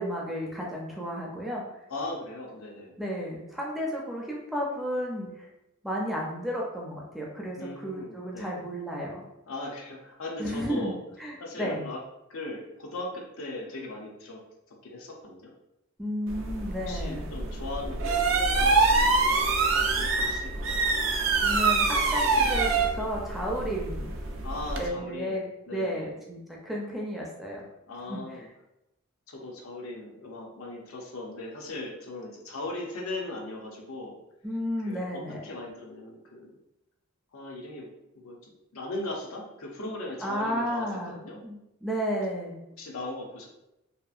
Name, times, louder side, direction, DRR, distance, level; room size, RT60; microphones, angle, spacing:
voice 1, 0.0-1.6 3.0-5.3 5.8-9.2 10.4-10.9 11.2-11.8 16.0-17.3 21.4-24.1 24.8-25.4 25.7-27.6 28.1-28.2 34.4-35.4 40.2-41.1 41.4-42.6, equal, ahead, -3 dB, 0.4 m, -32 dB
voice 2, 1.9-3.0 7.6-8.6 9.5-11.0 11.4-12.0 12.3-14.4 14.8-15.5 16.9-20.8 24.4-26.2 27.9-28.5 29.3-34.2 34.8-36.6 37.3-37.9 38.2-41.4 42.8-43.5, left 2 dB, 90° left, 0 dB, 0.6 m, -38 dB
sound 1, 16.3-24.9, right 3 dB, 65° right, 0.4 m, -25 dB
2.7 x 2.4 x 2.4 m, 0.89 s
head